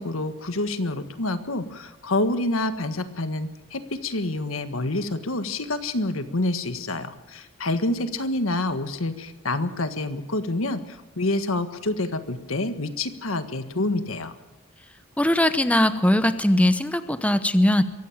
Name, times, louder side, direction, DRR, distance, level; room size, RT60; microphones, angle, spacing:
voice 1, 0.0-14.3, left 2 dB, 85° left, 9 dB, 1.6 m, -27 dB
voice 2, 15.2-17.8, left 1 dB, 5° left, 10 dB, 0.8 m, -20 dB
23.5 x 16.0 x 7.4 m, 1.1 s
head